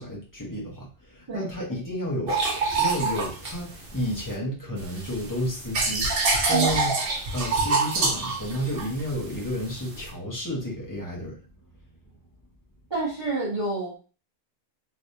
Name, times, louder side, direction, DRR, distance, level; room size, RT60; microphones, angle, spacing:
voice 1, 0.0-2.4 2.8-7.1 7.3-11.4, equal, 15° left, -3 dB, 1.0 m, -31 dB
sound 1, 2.3-4.3 4.8-10.1, right 3 dB, 55° right, 0.9 m, -26 dB
voice 2, 12.9-14.0, right 4 dB, 25° right, -6 dB, 0.8 m, -28 dB
3.4 x 3.0 x 2.7 m, 0.36 s
omnidirectional pair, 1.2 m